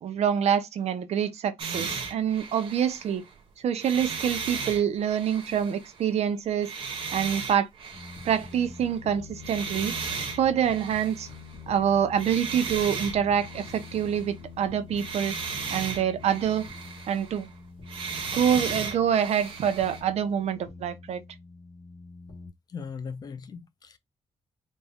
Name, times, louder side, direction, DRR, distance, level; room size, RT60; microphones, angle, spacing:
voice 1, 0.0-3.3 3.6-6.7 7.1-7.7 8.2-9.9 10.4-11.3 11.7-15.4 15.7-16.7 17.1-17.5 18.3-21.2, right 8 dB, 70° right, 0.7 m, -26 dB
sound 1, 1.6-3.3 3.8-6.1 6.6-9.0 9.3-11.6 12.1-14.5 14.9-17.5 17.9-20.0, right 5 dB, 50° right, 1.0 m, -36 dB
sound 2, 7.9-22.5, left 5 dB, 75° left, 1.6 m, -46 dB
voice 2, 22.7-24.0, left 6 dB, 35° left, 0.5 m, -38 dB
4.2 x 2.3 x 3.4 m
wide cardioid pair, 175°, 12 cm